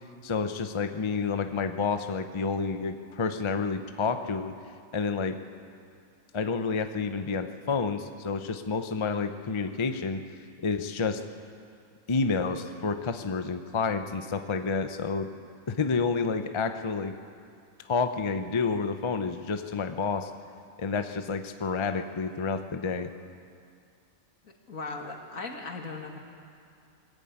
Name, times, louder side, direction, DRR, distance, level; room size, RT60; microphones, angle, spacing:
voice 1, 0.2-4.5 4.9-5.4 6.3-10.2 10.6-11.2 12.1-15.3 15.7-17.1 17.9-20.3 20.8-23.1, left 4 dB, 30° left, 8 dB, 0.6 m, -29 dB
voice 2, 24.4-26.2, left 3 dB, 80° left, 2 dB, 2.4 m, -38 dB
21.0 x 14.0 x 8.8 m, 2.4 s
omnidirectional pair, 1.4 m